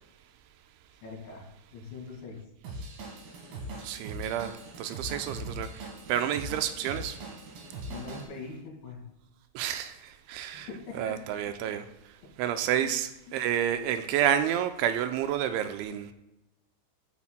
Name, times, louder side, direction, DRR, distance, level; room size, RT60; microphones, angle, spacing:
voice 1, 1.0-1.5 1.7-2.5 7.9-9.0 10.5-11.2 12.2-12.3 12.8-12.9, left 4 dB, 70° left, 4.5 m, -42 dB
Drum kit / Drum, 2.6-8.3, right 1 dB, 60° right, 3.2 m, -41 dB
voice 2, 3.8-7.3 9.5-10.7 11.0-16.1, right 10 dB, 85° right, 2.9 m, -30 dB
14.5 x 8.4 x 2.2 m
omnidirectional pair, 5.4 m